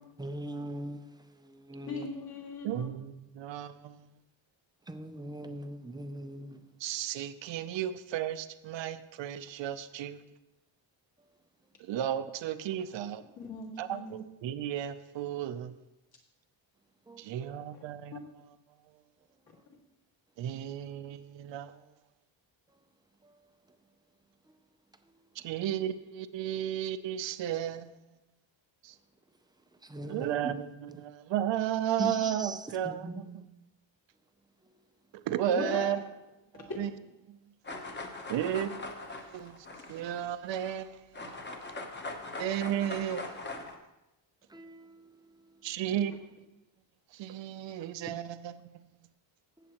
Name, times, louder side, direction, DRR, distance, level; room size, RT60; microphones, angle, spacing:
voice 1, 0.2-1.1 1.4-2.1 4.9-6.6 17.1-17.5 29.8-30.5 32.0-32.6 32.8-33.5 37.7-37.9 44.5-45.0, right 1 dB, 10° right, 0.4 m, -40 dB
voice 2, 1.9-2.9 13.4-14.2 17.7-17.8 35.5-36.0 36.5-36.6 46.0-46.1, left 3 dB, 50° left, 2.2 m, -38 dB
voice 3, 2.6-4.0 6.8-10.2 11.8-13.2 13.8-15.7 17.2-18.1 20.4-21.7 25.4-27.9 28.8-28.9 30.0-33.3 35.3-36.0 36.5-36.9 37.3-37.4 38.3-39.6 39.9-41.4 42.4-43.4 45.6-46.3 47.1-48.6, right 10 dB, 70° right, 0.6 m, -34 dB
sound 1, 37.6-40.8 41.1-43.8, left 2 dB, 25° left, 0.9 m, -41 dB
16.0 x 7.4 x 3.0 m
wide cardioid pair, 170°, 46 cm